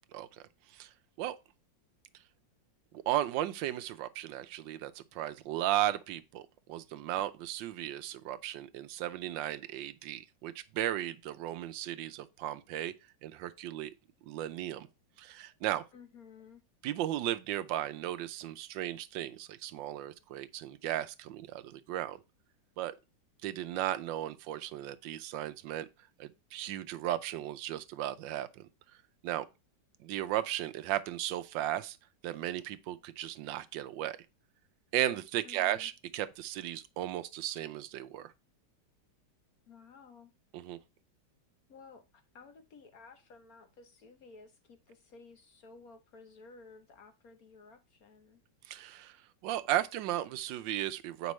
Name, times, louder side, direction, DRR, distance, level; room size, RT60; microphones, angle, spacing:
voice 1, 2.9-12.9 13.2-13.9 14.2-14.9 15.2-15.8 16.8-22.2 22.8-22.9 23.4-25.9 26.2-28.7 29.2-29.4 30.0-32.0 32.2-34.2 34.9-38.3 40.5-40.8 48.6-49.2 49.4-51.3, right 13 dB, 80° right, 1.3 m, -35 dB
voice 2, 15.9-16.6 35.4-35.9 39.7-40.3 41.7-48.4, left 4 dB, 55° left, 1.2 m, -55 dB
8.1 x 5.2 x 3.1 m
omnidirectional pair, 2.0 m